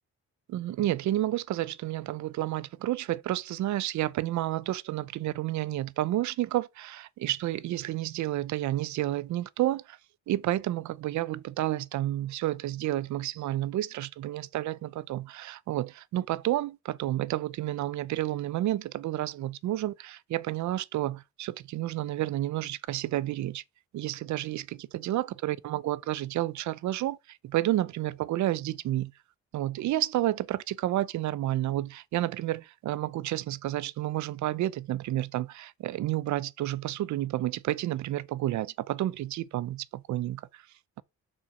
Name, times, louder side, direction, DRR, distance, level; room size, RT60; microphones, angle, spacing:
voice 1, 0.5-10.0 10.3-23.6 23.9-29.1 29.5-40.6, right 14 dB, 70° right, 0.6 m, -30 dB
6.2 x 4.5 x 5.7 m
cardioid pair, 90°, 30 cm